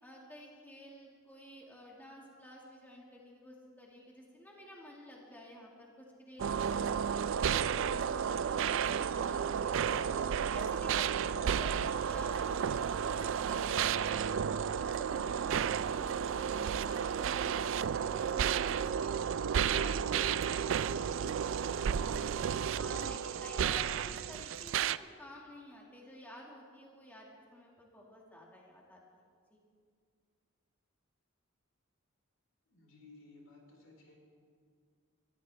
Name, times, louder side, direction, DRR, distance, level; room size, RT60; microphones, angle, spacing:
voice 1, 0.0-7.1 7.5-10.0 10.4-14.4 14.8-19.2 19.5-22.3 22.8-29.0 29.5-29.6, equal, 10° left, -2 dB, 1.8 m, -51 dB
sound 1, 6.4-25.0, right 8 dB, 65° right, 0.4 m, -32 dB
voice 2, 32.7-34.1, left 3 dB, 70° left, -1 dB, 4.0 m, -57 dB
26.5 x 13.5 x 3.3 m, 2.1 s
head